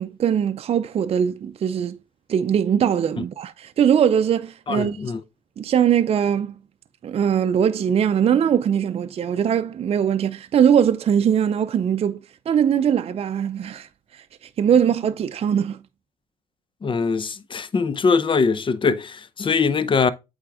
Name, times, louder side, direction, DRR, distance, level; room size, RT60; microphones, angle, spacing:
voice 1, 0.0-2.0 2.3-5.0 5.6-6.6 7.0-15.8, right 8 dB, 50° right, 0.4 m, -21 dB
voice 2, 4.7-5.2 16.8-20.1, left 5 dB, 40° left, 0.7 m, -22 dB
8.2 x 3.5 x 3.6 m
supercardioid pair, 60°, 13 cm